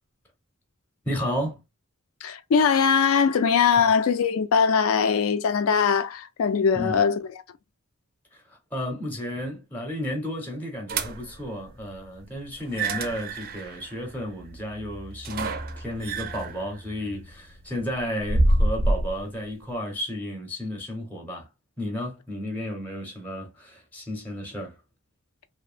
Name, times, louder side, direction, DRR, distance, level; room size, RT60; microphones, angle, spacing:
voice 1, 1.0-1.6 3.8-3.9 6.7-7.0 8.3-21.5 21.8-24.7, equal, 10° left, 0.6 m, -33 dB
voice 2, 2.2-7.2, left 6 dB, 65° left, 0.3 m, -21 dB
sound 1, 10.9-11.4 12.6-19.2, right 1 dB, 40° right, 0.4 m, -27 dB
2.7 x 2.0 x 2.3 m
head